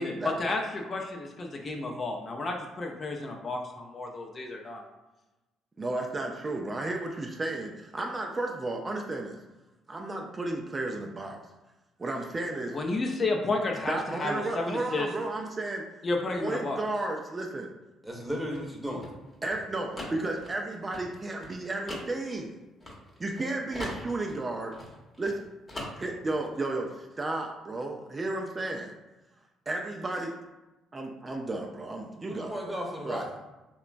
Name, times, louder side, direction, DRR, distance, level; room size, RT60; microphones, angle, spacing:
voice 1, 0.0-4.8 12.7-15.1 16.0-16.8, left 2 dB, 40° left, 1 dB, 0.4 m, -31 dB
voice 2, 5.8-9.4 9.9-11.4 12.0-12.8 13.9-15.8 16.4-17.7 19.4-22.6 23.2-24.7 25.2-25.4 26.0-28.9 29.7-30.3 30.9-32.8 33.0-33.2, right 2 dB, 30° right, 1 dB, 0.3 m, -33 dB
voice 3, 18.0-19.0 32.3-33.4, equal, 5° right, -2 dB, 0.8 m, -35 dB
sound 1, 18.1-23.4 23.7-25.4 25.7-26.4, left 1 dB, 25° left, 0.9 m, -42 dB
2.8 x 2.2 x 2.5 m, 1.1 s
hypercardioid pair, 60°, 0 cm